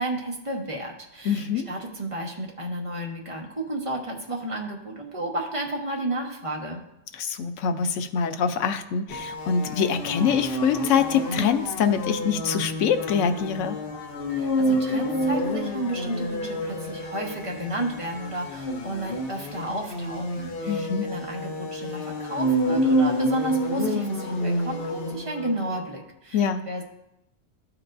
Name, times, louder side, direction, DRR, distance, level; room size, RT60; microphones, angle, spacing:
voice 1, 0.0-6.8 14.3-26.8, right 1 dB, 30° right, 0 dB, 1.0 m, -32 dB
voice 2, 1.2-1.7 7.1-13.8 20.6-21.1 26.3-26.6, left 7 dB, 90° left, 8 dB, 1.0 m, -24 dB
sound 1, 9.1-25.7, equal, 55° left, 0.9 m, -28 dB
13.0 x 4.6 x 2.5 m, 0.84 s
omnidirectional pair, 1.2 m